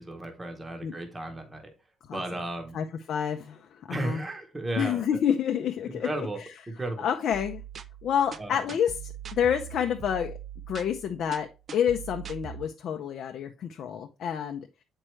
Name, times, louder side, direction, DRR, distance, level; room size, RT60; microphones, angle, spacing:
voice 1, 0.0-1.7 2.1-2.8 3.9-5.0 5.9-6.4 6.8-7.0 8.4-8.6, right 2 dB, 15° right, 4 dB, 0.9 m, -34 dB
voice 2, 2.7-4.2 4.8-6.6 7.0-7.6 8.0-10.3 10.7-14.7, left 8 dB, 55° left, 4 dB, 0.5 m, -29 dB
sound 1, 7.3-12.7, right 9 dB, 40° right, 0.3 m, -42 dB
7.6 x 4.5 x 3.1 m, 0.29 s
cardioid pair, 145°, 0 cm